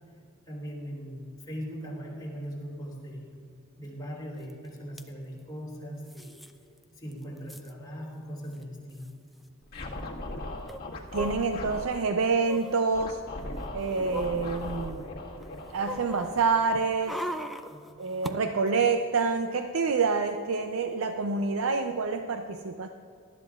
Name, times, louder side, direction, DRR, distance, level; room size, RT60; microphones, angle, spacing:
voice 1, 0.4-3.3 3.8-6.3 7.0-9.1 17.7-18.1, equal, 20° left, -4 dB, 3.4 m, -40 dB
sound 1, 4.5-4.6 4.8-5.1 6.1-6.5 6.8-6.9 7.1-7.7 8.6-8.7 8.9-9.1 10.7-11.8 12.4-12.8 13.4-15.0 15.4-18.3 18.7-18.8, equal, ahead, 0.4 m, -40 dB
Scratching (performance technique), 9.7-12.0 12.9-17.2, left 2 dB, 45° left, 1.7 m, -39 dB
voice 2, 11.1-13.2 13.7-15.0 15.7-17.2 18.0-22.9, right 4 dB, 75° right, 6 dB, 0.5 m, -27 dB
19.0 x 12.5 x 2.4 m, 2.5 s
head